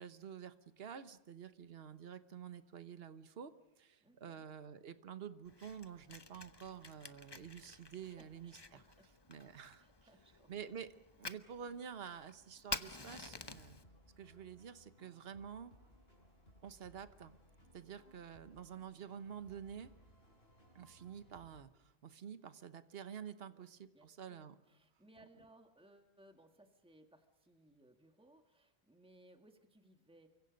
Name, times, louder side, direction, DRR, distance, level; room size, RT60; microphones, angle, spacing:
voice 1, 0.0-8.8 9.3-9.8 10.5-13.8 14.2-15.7 16.6-17.3 17.7-19.9 20.7-24.6, right 8 dB, 70° right, 11 dB, 1.3 m, -49 dB
voice 2, 4.0-4.5 8.2-9.1 9.8-10.5 23.5-30.3, right 1 dB, 5° right, 5 dB, 1.9 m, -65 dB
Fire, 5.4-13.8, left 3 dB, 25° left, 0.9 m, -50 dB
sound 1, 13.4-21.6, equal, 70° left, 6.9 m, -64 dB
29.5 x 25.0 x 5.3 m, 0.87 s
omnidirectional pair, 1.1 m